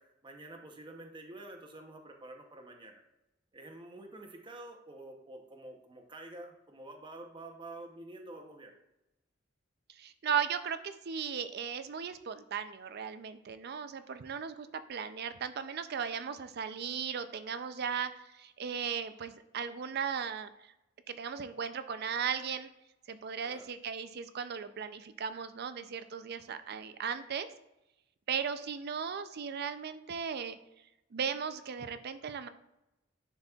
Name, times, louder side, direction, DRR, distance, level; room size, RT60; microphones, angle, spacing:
voice 1, 0.0-3.0 3.5-8.8 23.4-23.7, right 2 dB, 25° right, 3 dB, 0.7 m, -48 dB
voice 2, 9.9-20.7 21.1-22.7 23.1-27.5 28.3-30.6 31.1-32.5, right 7 dB, 55° right, 11 dB, 0.4 m, -37 dB
10.5 x 4.1 x 2.3 m, 0.90 s
head